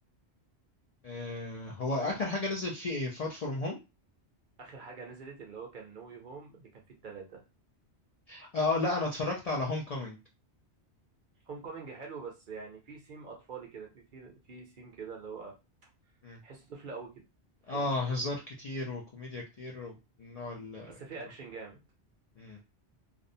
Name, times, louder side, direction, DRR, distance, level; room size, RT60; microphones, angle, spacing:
voice 1, 1.0-3.8 8.3-10.2 16.2-16.4 17.7-21.0 22.4-22.6, left 2 dB, 50° left, -2 dB, 0.4 m, -33 dB
voice 2, 4.6-7.4 11.5-15.5 16.4-17.1 17.7-18.0 20.8-21.8, right 5 dB, 55° right, 0 dB, 0.7 m, -45 dB
2.5 x 2.0 x 2.6 m, 0.26 s
omnidirectional pair, 1.1 m